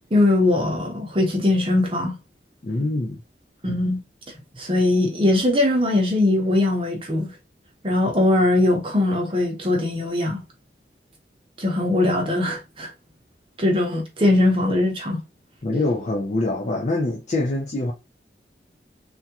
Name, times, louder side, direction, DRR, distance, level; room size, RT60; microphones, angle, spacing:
voice 1, 0.1-2.2 3.6-4.0 4.6-7.3 7.8-10.4 11.6-12.9 13.6-15.2, left 2 dB, 30° right, 0.8 m, -20 dB
voice 2, 2.6-3.2 15.6-17.9, left 2 dB, 40° left, 0.5 m, -24 dB
3.4 x 2.4 x 2.8 m
head